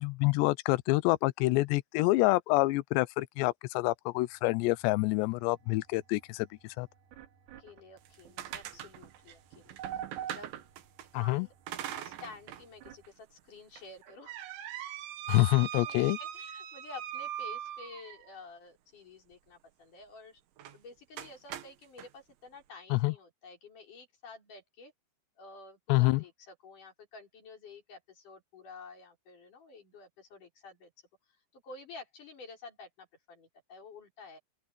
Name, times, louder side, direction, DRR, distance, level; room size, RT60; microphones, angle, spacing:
voice 1, 0.0-6.5 6.8-6.9 11.1-11.5 15.3-16.2 22.9-23.1 25.9-26.2, left 21 dB, 80° left, 2.7 m, -27 dB
sound 1, 4.2-13.1, right 10 dB, 65° right, 3.8 m, -49 dB
voice 2, 7.6-10.6 11.1-11.5 11.9-14.4 15.8-20.4 20.7-24.9 25.4-30.9 31.5-34.4, left 4 dB, 45° left, 6.4 m, -50 dB
sound 2, 8.0-11.1 11.7-12.7 13.0-13.1 13.8-18.4 20.6-20.8 21.2-22.1, right 11 dB, 80° right, 4.0 m, -41 dB
open air
omnidirectional pair, 5.3 m